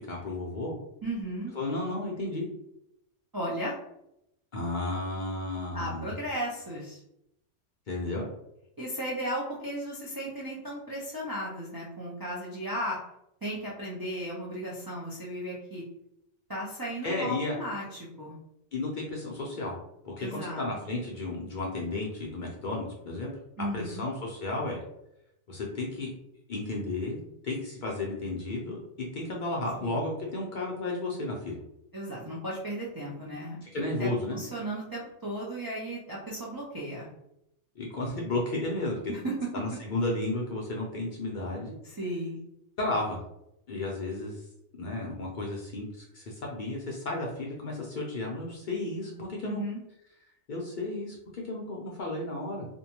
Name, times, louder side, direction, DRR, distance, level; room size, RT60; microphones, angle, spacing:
voice 1, 0.1-0.7 1.5-2.5 4.5-6.2 7.9-8.3 17.0-17.6 18.7-19.8 20.0-23.3 23.7-24.8 25.5-26.1 26.5-28.8 29.1-31.6 33.6-34.4 37.8-39.1 39.5-41.8 42.8-43.2 43.7-44.4 44.8-49.6 50.5-52.7, left 2 dB, 50° left, -2 dB, 0.6 m, -33 dB
voice 2, 1.0-1.5 3.3-3.8 5.7-7.0 8.8-13.0 13.4-15.8 16.5-18.4 20.2-20.6 23.6-24.0 29.8-30.0 31.9-33.6 34.0-37.1 39.1-39.3 41.8-42.4 49.4-49.8, right 1 dB, 35° right, -6 dB, 0.3 m, -35 dB
2.5 x 2.2 x 2.9 m, 0.80 s
omnidirectional pair, 1.3 m